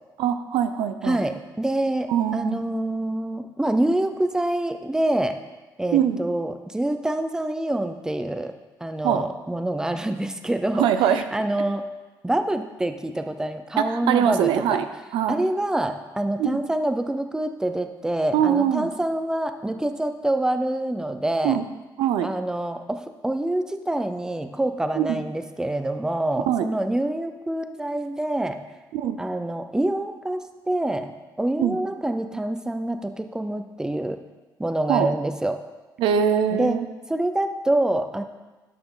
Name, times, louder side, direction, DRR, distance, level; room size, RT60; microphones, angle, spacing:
voice 1, 0.2-1.2 2.1-2.6 5.9-6.2 9.0-9.2 10.7-11.2 13.8-14.9 15.1-15.5 16.4-16.6 18.3-18.9 21.4-21.7 22.0-22.3 25.0-25.2 26.5-26.7 28.9-29.2 31.6-31.8 34.9-35.1 36.0-36.9, right 9 dB, 85° right, 9 dB, 0.5 m, -22 dB
voice 2, 1.0-5.3 5.8-8.5 8.8-10.9 11.3-11.9 12.2-14.8 15.3-21.6 22.2-28.6 29.2-31.1 31.4-34.2 34.6-35.6 36.5-36.8 37.1-38.2, right 1 dB, 10° right, 8 dB, 0.6 m, -26 dB
12.0 x 5.8 x 3.9 m, 1.2 s
cardioid pair, 90°, 8 cm